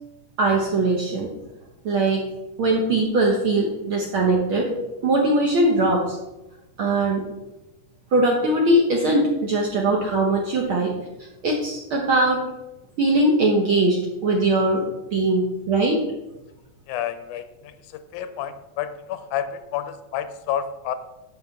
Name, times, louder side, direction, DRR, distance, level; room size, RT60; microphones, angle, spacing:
voice 1, 0.4-1.3 1.8-2.2 2.6-4.7 5.0-6.2 6.8-7.2 8.1-10.9 11.4-12.4 13.0-14.8 15.1-16.0, right 2 dB, 70° right, -1 dB, 1.3 m, -20 dB
voice 2, 16.9-17.7 18.1-20.9, left 10 dB, 85° left, 10 dB, 2.1 m, -29 dB
10.0 x 6.3 x 3.5 m, 1.0 s
omnidirectional pair, 3.5 m